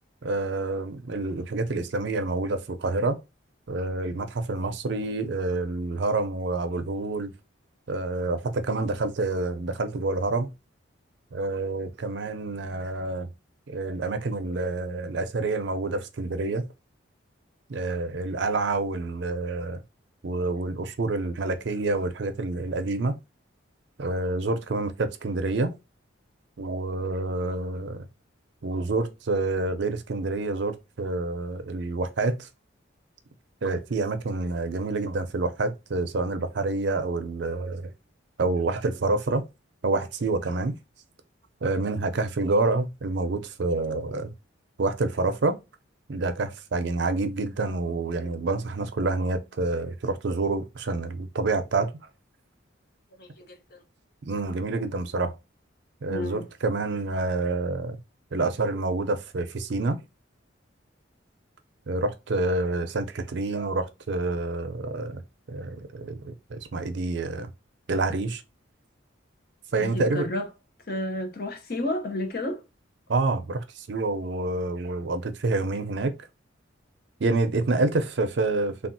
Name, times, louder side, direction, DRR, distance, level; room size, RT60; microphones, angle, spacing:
voice 1, 0.2-3.2 3.7-7.3 7.9-10.5 11.3-13.3 13.7-16.7 17.7-19.8 20.2-23.2 24.0-25.7 26.6-28.1 28.6-32.5 33.6-37.9 38.4-39.5 39.8-40.7 41.6-44.3 44.8-45.6 46.1-51.9 54.3-55.3 56.0-58.0 58.3-60.0 61.9-65.2 65.5-67.5 67.9-68.4 69.7-70.3 73.1-76.1 77.2-78.9, right 3 dB, 60° right, 0.5 m, -28 dB
voice 2, 53.2-53.8 56.1-56.4 69.8-70.5 70.9-72.6, left 1 dB, 50° left, 0.8 m, -31 dB
3.4 x 2.3 x 2.6 m
head